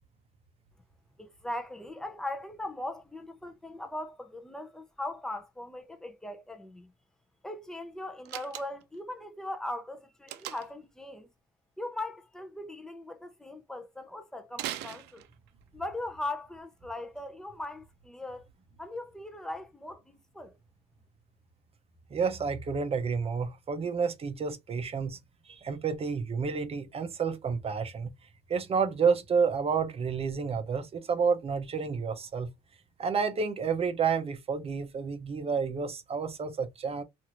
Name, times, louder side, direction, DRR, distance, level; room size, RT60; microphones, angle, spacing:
voice 1, 1.2-6.9 7.4-11.3 11.8-15.3 15.7-18.5 18.8-20.6, left 1 dB, 5° left, 0.6 m, -39 dB
Slam, 8.3-9.0 10.3-10.9 14.5-15.6, right 13 dB, 85° right, 0.5 m, -39 dB
voice 2, 22.1-25.2 25.5-28.1 28.5-32.5 33.0-37.0, right 5 dB, 35° right, 0.6 m, -30 dB
2.9 x 2.5 x 2.8 m
cardioid pair, 110°, 17 cm